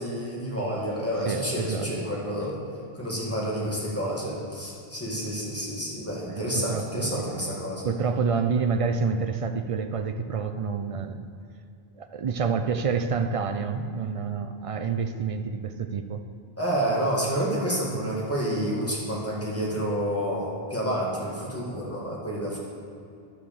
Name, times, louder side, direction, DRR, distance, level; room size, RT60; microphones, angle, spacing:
voice 1, 0.0-2.6 3.0-7.9 16.6-22.6, equal, 15° left, -5 dB, 2.0 m, -29 dB
voice 2, 1.3-1.9 6.3-7.3 7.8-11.3 12.0-16.2, right 5 dB, 55° right, 8 dB, 0.4 m, -28 dB
11.0 x 4.9 x 7.1 m, 2.5 s
omnidirectional pair, 1.1 m